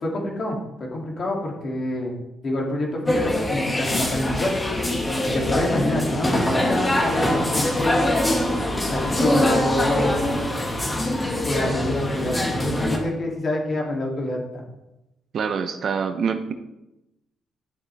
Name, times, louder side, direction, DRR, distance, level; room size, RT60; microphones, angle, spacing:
voice 1, 0.0-2.2 2.4-4.5 5.2-7.9 8.9-10.2 11.5-14.6, left 1 dB, 45° left, -1 dB, 2.7 m, -27 dB
sound 1, 3.1-13.0, left 1 dB, 20° left, 2.0 m, -23 dB
voice 2, 15.3-16.5, right 6 dB, 55° right, 8 dB, 0.8 m, -25 dB
10.5 x 7.3 x 3.5 m, 0.92 s
cardioid pair, 90°, 0 cm